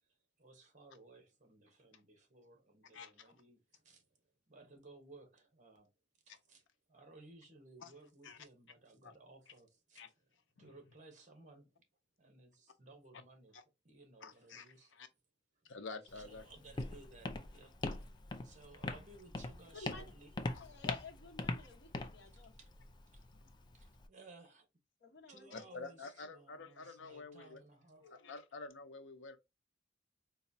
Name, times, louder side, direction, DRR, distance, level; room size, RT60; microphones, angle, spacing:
voice 1, 0.4-4.0 4.5-5.9 6.3-6.6 6.9-10.0 10.6-11.8 12.2-13.6 13.8-14.9 16.1-17.7 18.4-20.3 22.6-22.7 23.1-23.3 23.7-24.7 25.3-28.0, right 3 dB, 40° right, 1.0 m, -59 dB
voice 2, 2.9-3.3 7.8-7.9 8.2-8.4 9.0-9.1 9.9-10.1 10.6-10.7 13.5-13.6 14.2-15.1 15.6-16.5 20.5-20.7 23.4-23.5 25.5-27.6 28.1-29.4, left 3 dB, 85° left, 0.7 m, -49 dB
Walk footsteps, 16.1-24.1, left 2 dB, 25° left, 0.4 m, -43 dB
voice 3, 19.7-20.0 20.5-22.5 25.0-26.1 28.0-28.4, left 4 dB, 65° left, 1.1 m, -53 dB
4.0 x 2.3 x 2.7 m
head